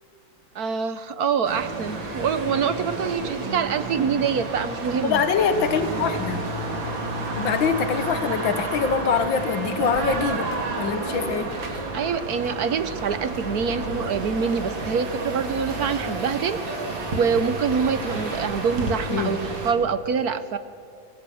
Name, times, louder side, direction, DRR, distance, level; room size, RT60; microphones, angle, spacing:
voice 1, 0.5-5.2 11.9-16.6 17.1-19.4 19.6-20.6, right 6 dB, 60° right, 12 dB, 1.3 m, -25 dB
sound 1, 1.4-19.7, right 2 dB, 80° right, 3.4 m, -31 dB
voice 2, 5.0-6.4 7.4-10.5 10.8-11.5 19.1-19.4, left 6 dB, 80° left, 9 dB, 2.1 m, -24 dB
25.0 x 20.5 x 7.9 m, 2.2 s
omnidirectional pair, 2.1 m